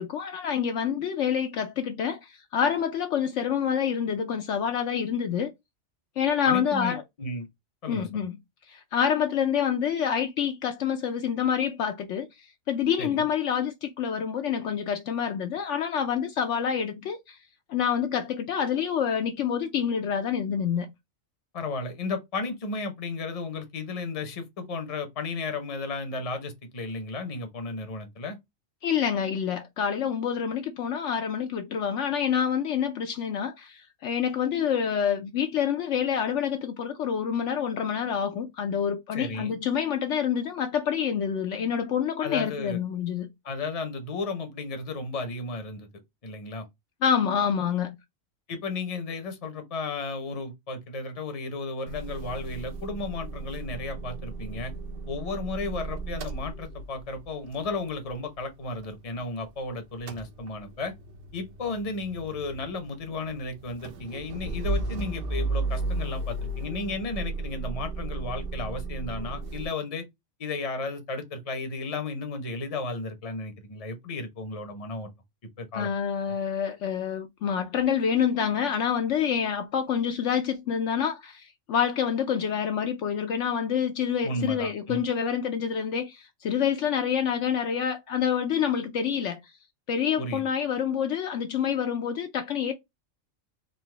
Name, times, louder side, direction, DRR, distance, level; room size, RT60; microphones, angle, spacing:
voice 1, 0.0-5.5 6.2-7.0 7.9-8.4 8.7-17.4 17.7-20.9 28.8-43.3 47.0-48.0 75.7-89.4 89.9-92.7, left 8 dB, 70° left, 0.9 m, -27 dB
voice 2, 6.4-7.5 7.8-8.2 13.0-13.3 21.5-28.4 39.1-39.5 42.2-42.8 43.4-45.9 46.2-46.6 48.5-54.7 55.1-60.9 61.3-70.0 70.4-75.1 75.6-75.9 84.2-85.0 90.2-90.4, left 3 dB, 30° left, 0.8 m, -34 dB
Motor vehicle (road) / Engine starting / Idling, 51.9-59.6 59.8-69.7, right 2 dB, 55° right, 0.7 m, -35 dB
3.9 x 2.7 x 3.2 m
omnidirectional pair, 1.4 m